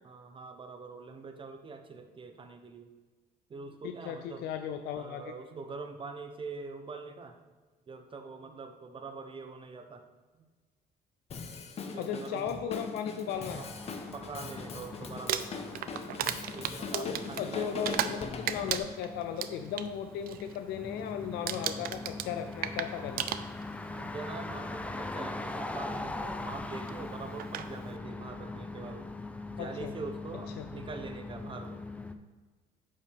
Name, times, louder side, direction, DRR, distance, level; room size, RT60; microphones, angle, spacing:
voice 1, 0.0-2.9 3.5-4.6 4.9-7.4 7.9-10.0 10.3-10.4 11.9-12.5 13.6-13.7 14.1-15.6 16.5-18.3 23.9-29.1 29.5-31.8, right 4 dB, 30° right, 6 dB, 0.8 m, -44 dB
voice 2, 3.8-5.3 12.0-13.6 16.9-23.3 29.6-29.9 30.6-30.7, left 8 dB, 80° left, 6 dB, 0.5 m, -36 dB
Drum kit, 11.3-18.8, left 4 dB, 40° left, 0.7 m, -41 dB
sound 1, 13.3-32.1, left 2 dB, 10° left, 0.4 m, -41 dB
Crumpling crinkling, 15.1-18.2 18.5-19.9 20.2-20.6 20.8-21.2 21.5-23.9 24.8-24.9 26.9-27.0 27.4-27.7, right 11 dB, 60° right, 0.5 m, -34 dB
8.6 x 5.5 x 3.5 m, 1.4 s
cardioid pair, 110°, 17 cm